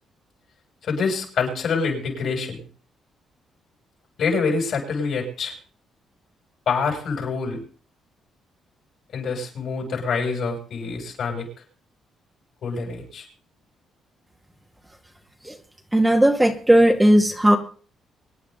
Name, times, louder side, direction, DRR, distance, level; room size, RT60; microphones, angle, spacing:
voice 1, 0.8-2.6 4.2-5.5 6.7-7.6 9.1-11.5 12.6-13.3, left 5 dB, 65° left, 1 dB, 7.4 m, -26 dB
voice 2, 15.9-17.6, right 1 dB, 10° right, 2 dB, 2.2 m, -16 dB
24.5 x 10.0 x 4.0 m, 0.43 s
cardioid pair, 90°, 0 cm